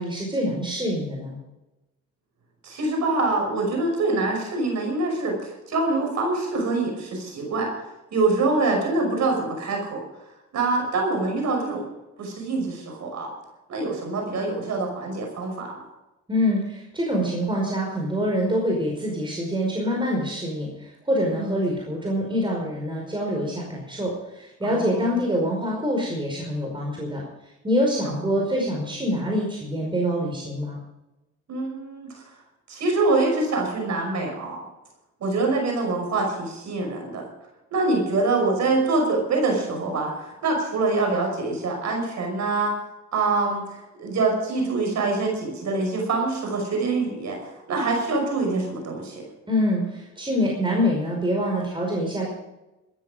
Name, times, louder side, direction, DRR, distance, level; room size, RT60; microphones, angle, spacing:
voice 1, 0.0-1.4 16.3-30.8 49.5-52.3, equal, 15° right, -1 dB, 5.2 m, -25 dB
voice 2, 2.6-7.7 8.1-10.0 10.5-11.9 12.2-13.3 13.7-15.7 21.3-21.6 24.6-25.2 28.0-28.3 31.5-32.2 32.7-34.7 35.2-37.3 37.7-42.7 43.1-49.2, right 3 dB, 65° right, 2 dB, 5.8 m, -25 dB
15.0 x 14.0 x 5.1 m, 0.99 s
cardioid pair, 90°, 30 cm